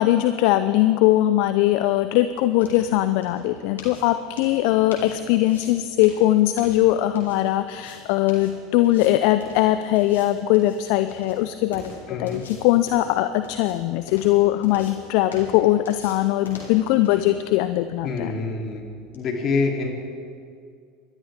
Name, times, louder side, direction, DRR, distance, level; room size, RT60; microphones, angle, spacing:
voice 1, 0.0-18.3, left 14 dB, 60° left, 11 dB, 0.5 m, -20 dB
sound 1, 1.5-19.3, left 3 dB, 85° left, 2.7 m, -44 dB
voice 2, 12.1-12.4 18.0-18.9 19.1-19.9, left 4 dB, 40° left, 0 dB, 3.1 m, -26 dB
26.5 x 12.5 x 3.6 m, 2.3 s
hypercardioid pair, 80°, 0 cm